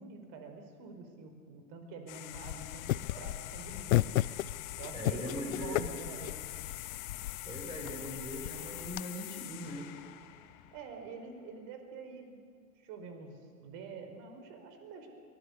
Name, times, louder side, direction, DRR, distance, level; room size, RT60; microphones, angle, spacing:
voice 1, 0.0-4.2 4.8-6.4 10.7-12.4 12.8-15.1, right 4 dB, 50° right, 6 dB, 5.0 m, -47 dB
sound 1, 2.1-11.2, left 16 dB, 45° left, 1.7 m, -45 dB
sound 2, 2.3-9.0, left 15 dB, 65° left, 0.8 m, -35 dB
voice 2, 4.9-5.9 7.4-9.9, equal, 10° right, -1 dB, 5.8 m, -41 dB
23.0 x 20.5 x 8.4 m, 2.1 s
hypercardioid pair, 100°, 44 cm